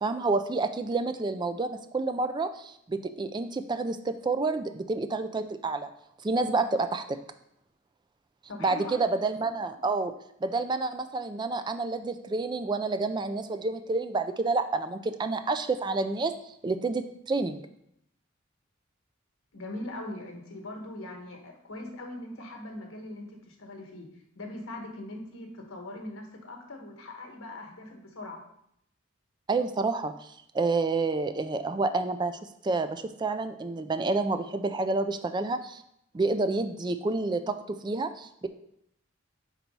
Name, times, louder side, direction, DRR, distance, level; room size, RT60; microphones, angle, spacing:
voice 1, 0.0-5.9 6.2-7.2 8.6-10.1 10.4-16.3 16.6-17.6 29.5-35.8 36.1-38.5, right 3 dB, 20° right, 10 dB, 0.3 m, -29 dB
voice 2, 8.5-9.2 19.5-24.1 24.3-28.4, left 1 dB, 85° left, 3 dB, 1.2 m, -41 dB
4.5 x 4.0 x 5.3 m, 0.76 s
head